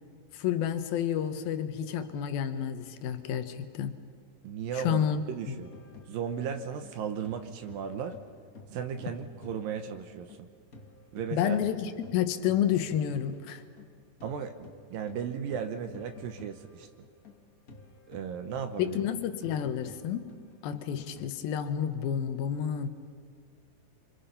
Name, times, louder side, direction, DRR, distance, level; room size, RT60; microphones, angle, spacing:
voice 1, 0.3-3.9 4.7-5.2 5.5-5.6 11.3-13.6 18.8-20.3 20.6-22.9, left 9 dB, 90° left, 9 dB, 2.9 m, -30 dB
voice 2, 4.4-5.7 6.1-8.2 8.7-10.5 11.1-11.6 14.2-16.9 18.1-19.0, right 7 dB, 75° right, 6 dB, 2.7 m, -36 dB
sound 1, 5.6-10.4 10.7-21.3, left 3 dB, 55° left, 0.9 m, -52 dB
28.0 x 27.0 x 5.7 m, 2.1 s
omnidirectional pair, 4.1 m